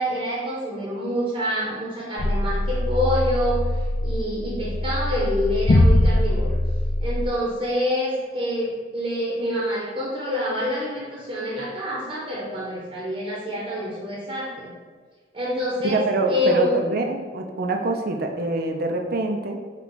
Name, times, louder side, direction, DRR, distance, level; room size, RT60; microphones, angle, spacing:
voice 1, 0.0-3.6 4.0-6.6 7.0-14.7 15.3-16.0 16.3-16.8, left 1 dB, 30° right, -6 dB, 0.9 m, -26 dB
sound 1, 2.2-7.3, left 1 dB, 50° left, 0.4 m, -22 dB
voice 2, 15.8-19.6, right 2 dB, 55° right, 4 dB, 0.5 m, -25 dB
5.8 x 2.3 x 3.9 m, 1.5 s
head